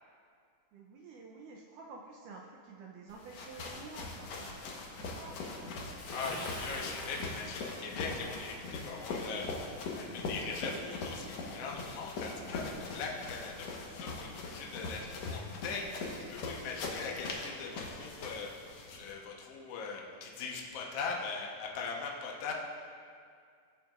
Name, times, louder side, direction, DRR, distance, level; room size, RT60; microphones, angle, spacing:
voice 1, 0.7-4.6 5.0-5.6, right 4 dB, 85° right, -1 dB, 1.9 m, -50 dB
sound 1, 3.1-19.1, left 3 dB, 65° left, 1.7 m, -41 dB
Bathtub (filling or washing) / Splash splatter, 6.0-8.5, left 1 dB, 35° left, 2.5 m, -45 dB
voice 2, 6.1-18.7 19.0-22.5, left 4 dB, 85° left, -1 dB, 1.3 m, -41 dB
20.5 x 7.6 x 2.4 m, 2.2 s
omnidirectional pair, 4.4 m